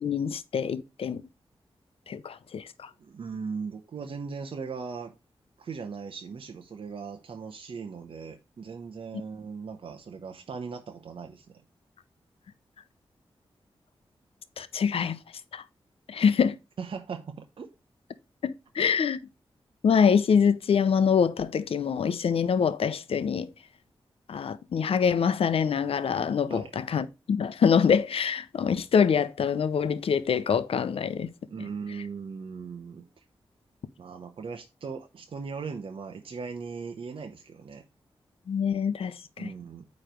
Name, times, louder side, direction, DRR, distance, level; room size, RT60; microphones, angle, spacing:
voice 1, 0.0-1.2 2.1-2.9 14.6-15.2 15.5-15.6 16.1-16.6 18.4-19.2 19.8-23.5 24.3-31.3 38.5-39.5, left 6 dB, 80° left, 0.6 m, -25 dB
voice 2, 3.0-5.1 5.6-11.6 16.8-17.7 26.5-26.7 31.5-33.2 34.0-37.8 39.4-39.9, right 5 dB, 65° right, 0.8 m, -38 dB
9.0 x 3.2 x 5.1 m
wide cardioid pair, 90°, 10 cm